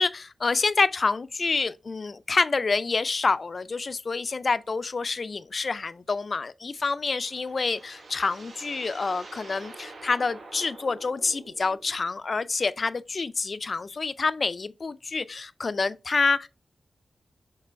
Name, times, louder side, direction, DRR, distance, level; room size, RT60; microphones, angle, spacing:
voice 1, 0.0-16.5, left 4 dB, 45° left, 0.4 m, -27 dB
sound 1, 6.9-12.1, right 3 dB, 75° right, 1.3 m, -46 dB
6.7 x 3.3 x 4.3 m
wide cardioid pair, 135°, 0 cm